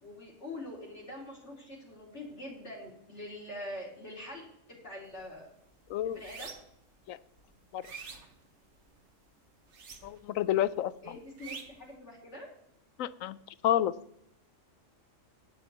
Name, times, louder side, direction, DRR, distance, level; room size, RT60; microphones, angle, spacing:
voice 1, 0.0-5.5 6.0-6.5 11.0-12.5, left 1 dB, 60° left, -3 dB, 3.2 m, -44 dB
sound 1, 5.1-5.3 5.7-6.8 7.3-9.0 9.6-10.4 10.7-11.9, right 5 dB, 60° right, 1.5 m, -47 dB
voice 2, 10.0-10.9 13.0-13.4 13.6-13.9, left 12 dB, 80° left, 17 dB, 1.0 m, -29 dB
9.6 x 7.4 x 8.0 m, 0.76 s
omnidirectional pair, 1.4 m